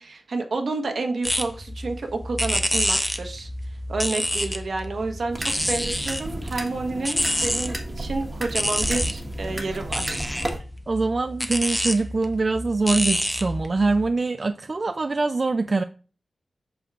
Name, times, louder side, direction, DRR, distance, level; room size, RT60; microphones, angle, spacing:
voice 1, 0.0-10.3, right 3 dB, 65° right, 1.2 m, -30 dB
sound 1, 1.2-14.1, equal, 5° left, 0.6 m, -28 dB
sound 2, 5.3-10.6, right 1 dB, 25° right, 1.3 m, -33 dB
voice 2, 10.9-15.8, right 3 dB, 40° right, 0.3 m, -23 dB
8.0 x 6.1 x 2.4 m
wide cardioid pair, 125°, 0 cm